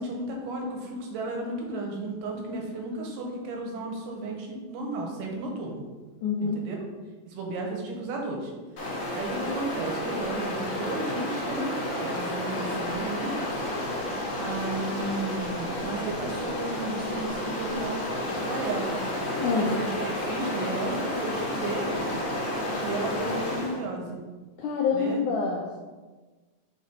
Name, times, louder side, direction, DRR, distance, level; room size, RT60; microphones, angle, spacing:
voice 1, 0.0-5.8 6.4-6.8 7.3-8.5 9.0-13.4 14.0-18.0 18.4-19.0 19.6-22.2 22.8-24.2 24.9-25.2, right 2 dB, 75° right, 0 dB, 2.3 m, -34 dB
voice 2, 6.2-6.6 19.4-19.7 24.6-25.8, left 5 dB, 85° left, 0 dB, 1.7 m, -26 dB
Stream, 8.8-23.8, left 1 dB, 60° left, 2.0 m, -31 dB
4.9 x 4.7 x 4.3 m, 1.3 s
omnidirectional pair, 4.1 m